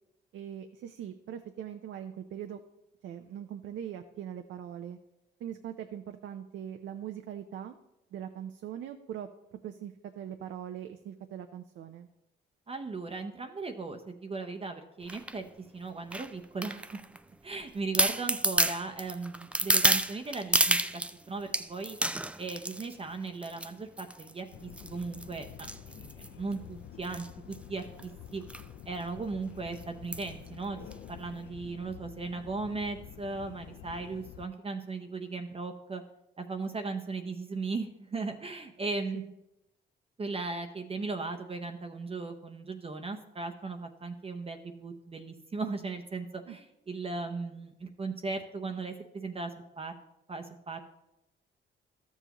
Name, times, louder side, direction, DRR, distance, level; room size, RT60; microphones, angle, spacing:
voice 1, 0.3-2.6 3.0-5.0 5.4-7.8 8.1-9.3 9.6-12.1 39.1-39.3 46.5-46.6, right 9 dB, 70° right, 7 dB, 0.6 m, -41 dB
voice 2, 12.7-15.4 15.7-17.0 17.4-21.0 21.3-22.0 22.4-28.4 28.9-36.0 36.4-39.2 40.2-49.9 50.3-50.8, right 3 dB, 30° right, 5 dB, 0.7 m, -37 dB
sound 1, 15.1-15.4 16.1-17.2 17.6-17.7 17.9-21.1 21.5-22.9 23.4-23.7 24.0-24.3 24.8-26.5 27.0-27.3 27.5-27.6 27.8-28.0 28.5-28.7 29.0-29.1 30.1-30.4 30.9-31.0, right 1 dB, 5° right, 0.3 m, -29 dB
sound 2, 24.5-34.5, left 10 dB, 65° left, 0.5 m, -49 dB
12.5 x 7.1 x 3.0 m, 0.89 s
cardioid pair, 90°, 20 cm